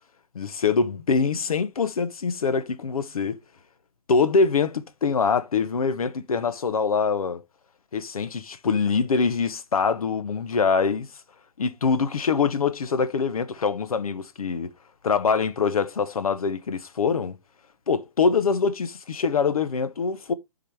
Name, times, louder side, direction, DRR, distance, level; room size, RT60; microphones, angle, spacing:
voice 1, 0.3-3.4 4.1-7.4 7.9-11.1 11.6-14.7 15.0-17.4 17.9-20.3, left 5 dB, 70° left, 0.9 m, -24 dB
9.9 x 4.0 x 3.4 m
hypercardioid pair, 140°, 19 cm